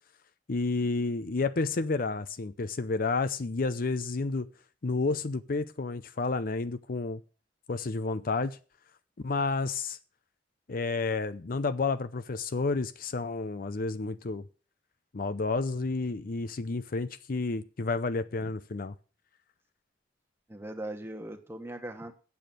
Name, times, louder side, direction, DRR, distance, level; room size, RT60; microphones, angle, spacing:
voice 1, 0.5-4.5 4.8-7.2 7.7-8.6 9.2-10.0 10.7-14.4 15.1-18.9, left 3 dB, 50° left, 13 dB, 0.6 m, -30 dB
voice 2, 20.5-22.1, right 1 dB, 15° right, 4 dB, 1.4 m, -39 dB
8.5 x 7.0 x 7.6 m, 0.37 s
head